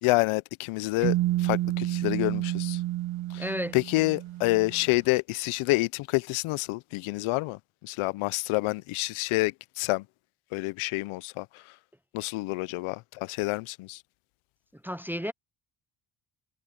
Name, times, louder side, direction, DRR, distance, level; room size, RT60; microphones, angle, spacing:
voice 1, 0.0-2.8 3.3-3.4 3.7-10.0 10.5-11.6 12.1-14.0, left 22 dB, 80° left, 0.7 m, -28 dB
sound 1, 1.0-4.9, right 16 dB, 75° right, 2.3 m, -30 dB
voice 2, 3.4-3.8 14.8-15.3, equal, 5° right, 0.6 m, -32 dB
supercardioid pair, 80°, 49 cm